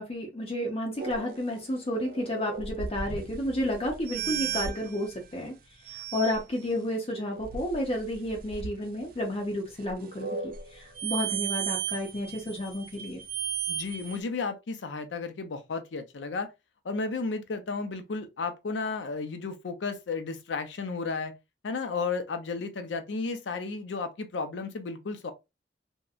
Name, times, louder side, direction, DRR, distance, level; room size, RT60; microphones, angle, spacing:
voice 1, 0.0-5.5 6.1-13.2, left 1 dB, 35° left, 0.5 m, -31 dB
sound 1, 1.0-5.1 5.9-6.4 7.1-8.7 9.9-14.2, right 7 dB, 50° right, 0.3 m, -35 dB
voice 2, 13.7-16.5 16.8-21.3 21.6-25.3, left 4 dB, 85° left, 0.5 m, -33 dB
2.7 x 2.1 x 2.3 m
head